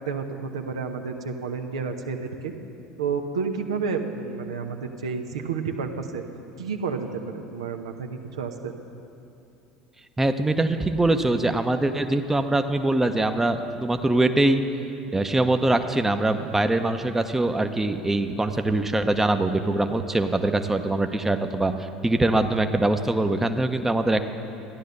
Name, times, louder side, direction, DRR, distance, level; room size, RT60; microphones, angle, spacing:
voice 1, 0.0-2.5 3.0-6.2 6.6-8.7, right 5 dB, 80° right, 5 dB, 0.9 m, -30 dB
voice 2, 10.2-14.6 15.1-24.2, right 2 dB, 10° right, 7 dB, 0.8 m, -23 dB
13.0 x 10.5 x 6.7 m, 2.7 s
hypercardioid pair, 70°, 3 cm